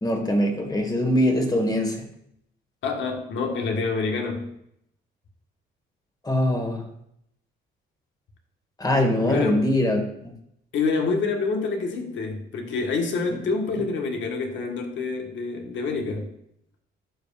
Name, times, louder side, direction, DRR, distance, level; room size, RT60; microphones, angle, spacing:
voice 1, 0.0-2.0 6.2-6.8 8.8-10.3 13.3-13.4 13.8-13.9, left 1 dB, 20° left, 3 dB, 1.6 m, -23 dB
voice 2, 2.8-4.5 9.3-9.7 10.7-16.3, left 4 dB, 70° left, 2 dB, 1.5 m, -27 dB
12.0 x 5.2 x 2.5 m, 0.74 s
cardioid pair, 90°, 20 cm